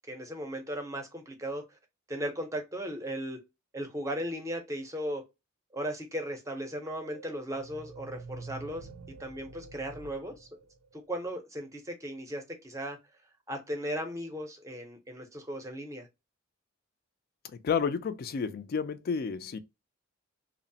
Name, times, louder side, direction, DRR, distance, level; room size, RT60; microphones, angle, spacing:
voice 1, 0.1-1.6 2.1-3.4 3.7-5.2 5.7-8.9 9.2-10.5 10.9-13.0 13.5-16.1, equal, 15° right, 0.6 m, -36 dB
sound 1, 6.6-11.2, right 4 dB, 85° right, 0.4 m, -48 dB
voice 2, 17.4-19.6, left 6 dB, 45° left, 0.3 m, -31 dB
2.9 x 2.0 x 2.6 m
head